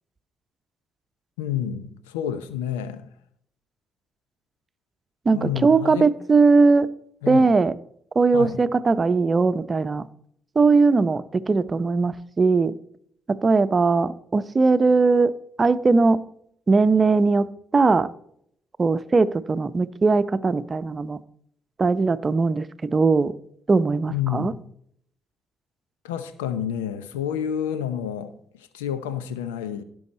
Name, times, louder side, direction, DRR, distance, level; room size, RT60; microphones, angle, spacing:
voice 1, 1.4-3.1 5.3-6.1 7.2-7.5 8.3-8.6 24.1-24.6 26.0-29.8, left 9 dB, 90° left, 0.7 m, -29 dB
voice 2, 5.3-6.9 7.3-7.7 8.1-10.0 10.6-12.7 13.3-15.3 15.6-16.2 16.7-17.5 17.7-18.1 18.8-21.2 21.8-23.3 23.7-24.5, right 4 dB, 40° right, 0.8 m, -19 dB
16.0 x 6.4 x 4.3 m
hypercardioid pair, 45°, 0 cm